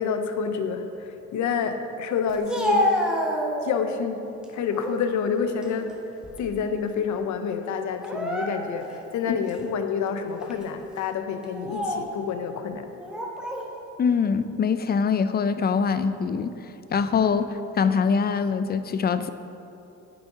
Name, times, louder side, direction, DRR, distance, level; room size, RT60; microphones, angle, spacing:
voice 1, 0.0-2.9 3.6-4.2 4.5-5.9 6.4-12.9, left 6 dB, 70° left, 7 dB, 0.7 m, -28 dB
Speech, 2.3-3.9 4.4-5.0 5.5-6.7 6.9-7.1 7.9-8.9 9.5-9.6 10.4-10.7 11.4-12.1 13.0-13.7, equal, 5° right, 1.1 m, -29 dB
voice 2, 9.3-9.7 14.0-16.6 16.9-19.3, left 6 dB, 35° left, 12 dB, 0.4 m, -24 dB
10.0 x 6.1 x 3.7 m, 2.8 s
cardioid pair, 90°, 30 cm